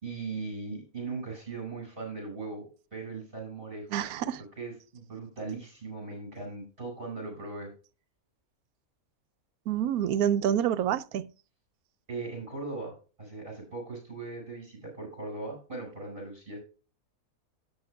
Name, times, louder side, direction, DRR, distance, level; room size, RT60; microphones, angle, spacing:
voice 1, 0.0-4.3 4.6-7.7 12.1-16.6, right 3 dB, 35° right, 5.5 m, -39 dB
voice 2, 3.9-4.4 9.7-11.3, right 10 dB, 85° right, 1.1 m, -27 dB
13.0 x 8.9 x 2.3 m
omnidirectional pair, 1.5 m